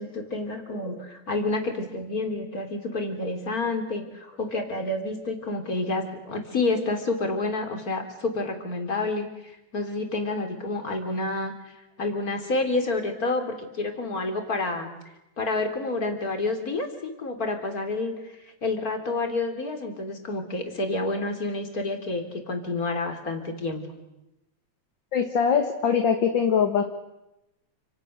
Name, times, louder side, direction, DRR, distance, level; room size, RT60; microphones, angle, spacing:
voice 1, 0.0-9.3 9.7-11.7 12.0-14.9 15.4-18.3 18.6-23.9, left 2 dB, 30° left, 5 dB, 3.8 m, -29 dB
voice 2, 25.1-26.8, left 7 dB, 45° left, 5 dB, 2.0 m, -22 dB
29.0 x 27.5 x 6.7 m, 0.94 s
omnidirectional pair, 3.4 m